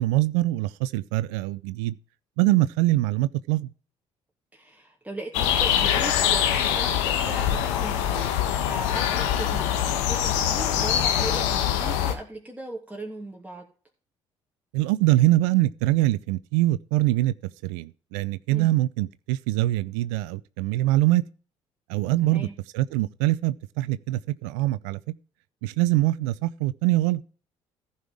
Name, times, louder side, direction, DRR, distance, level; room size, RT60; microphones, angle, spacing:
voice 1, 0.0-2.0 2.4-3.7 14.7-17.3 17.6-21.2 21.9-22.5 22.7-25.0 25.6-27.2, right 17 dB, 75° right, 0.5 m, -23 dB
voice 2, 4.5-8.3 8.6-13.7 18.5-18.8 22.2-22.5, right 1 dB, 10° right, 2.7 m, -38 dB
sound 1, 5.3-12.2, left 9 dB, 80° left, 1.4 m, -24 dB
14.5 x 5.6 x 4.7 m
hypercardioid pair, 55°, 15 cm